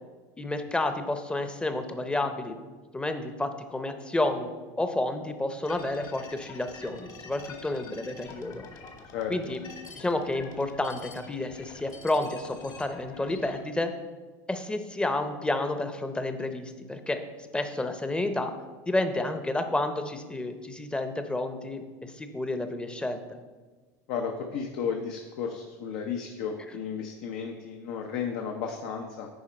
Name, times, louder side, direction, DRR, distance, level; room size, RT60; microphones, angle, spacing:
voice 1, 0.4-2.6 2.9-8.6 9.3-13.9 14.5-17.2 17.5-18.5 18.9-23.4, left 2 dB, 10° left, 8 dB, 0.7 m, -30 dB
sound 1, 5.6-13.6, left 5 dB, 45° left, 1.4 m, -47 dB
voice 2, 24.1-29.3, left 6 dB, 65° left, 3 dB, 0.8 m, -33 dB
10.0 x 4.5 x 4.4 m, 1.3 s
supercardioid pair, 105°, 10 cm